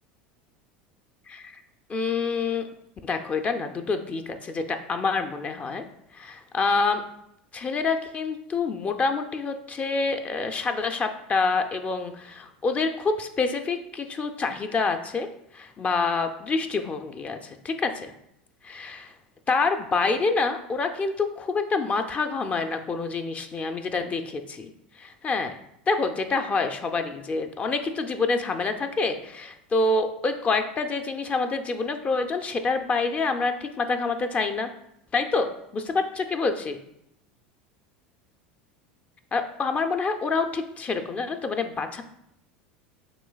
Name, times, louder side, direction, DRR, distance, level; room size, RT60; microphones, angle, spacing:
voice 1, 1.3-1.6 1.9-2.7 3.0-5.8 6.1-7.0 7.5-15.3 15.5-18.1 18.6-19.1 19.5-25.6 25.9-34.7 35.1-36.8 39.3-42.0, left 4 dB, 30° left, 7 dB, 0.4 m, -27 dB
6.1 x 3.2 x 2.3 m, 0.76 s
hypercardioid pair, 80°, 5 cm